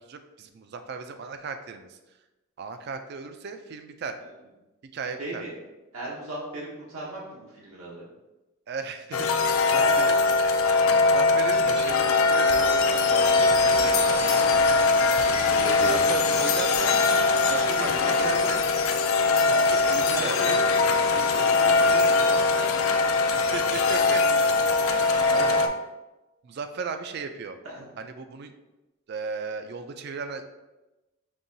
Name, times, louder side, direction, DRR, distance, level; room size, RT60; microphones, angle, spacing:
voice 1, 0.1-2.0 2.6-4.2 4.8-5.4 8.7-9.3 9.7-10.2 11.0-14.6 15.9-17.0 17.4-18.6 19.5-20.5 21.0-21.2 23.3-24.2 26.4-27.6 28.0-28.5 29.1-30.5, right 5 dB, 50° right, 8 dB, 0.3 m, -36 dB
voice 2, 5.2-5.5 5.9-8.1 9.7-10.1 14.4-14.8 15.5-16.3 17.4-18.5 19.5-19.6 20.0-20.6 21.1-22.7 25.2-25.6 27.6-27.9, right 1 dB, 80° right, -4 dB, 0.9 m, -37 dB
sound 1, 9.1-25.7, left 3 dB, 75° left, 0.4 m, -21 dB
5.3 x 2.9 x 2.7 m, 1.0 s
head